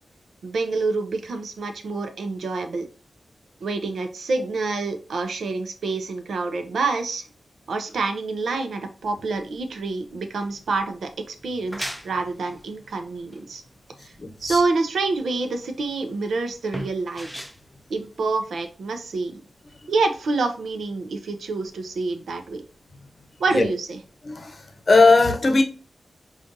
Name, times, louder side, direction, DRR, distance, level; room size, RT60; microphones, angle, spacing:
voice 1, 0.4-2.9 3.6-7.3 7.7-13.6 14.0-14.1 14.4-17.3 17.9-19.4 19.9-22.6 23.4-24.0, right 3 dB, 90° right, 0.5 m, -27 dB
sound 1, 11.4-18.8, equal, 5° right, 0.4 m, -39 dB
voice 2, 14.2-14.6 23.5-23.7 24.2-25.6, left 3 dB, 50° left, 0.7 m, -18 dB
5.1 x 2.4 x 2.6 m
wide cardioid pair, 80°, 0 cm